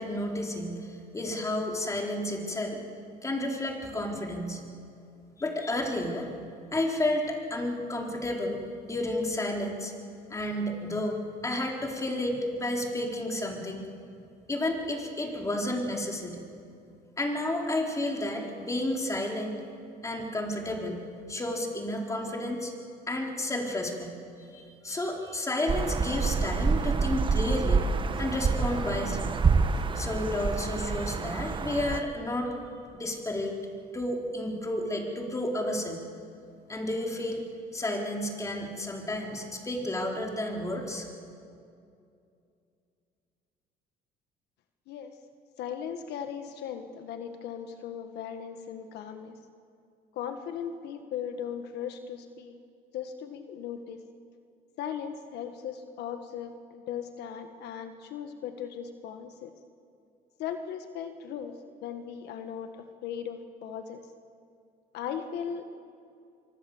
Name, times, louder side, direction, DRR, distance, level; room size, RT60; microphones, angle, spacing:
voice 1, 0.0-2.8 3.2-4.6 5.4-6.3 6.7-9.9 10.3-13.9 14.5-16.4 17.2-19.6 20.0-21.0 21.3-22.7 23.1-27.8 28.2-29.4 29.9-32.5 32.9-33.5 33.9-36.0 36.7-37.4 37.7-41.1, left 1 dB, 20° left, 0 dB, 4.2 m, -31 dB
sound 1, 25.7-32.0, right 4 dB, 30° right, 1.2 m, -27 dB
voice 2, 45.6-49.4 50.1-52.6 52.9-54.0 54.8-59.5 60.4-64.0 64.9-65.6, left 8 dB, 80° left, 7 dB, 1.5 m, -38 dB
25.0 x 24.5 x 7.2 m, 2.5 s
cardioid pair, 110°, 17 cm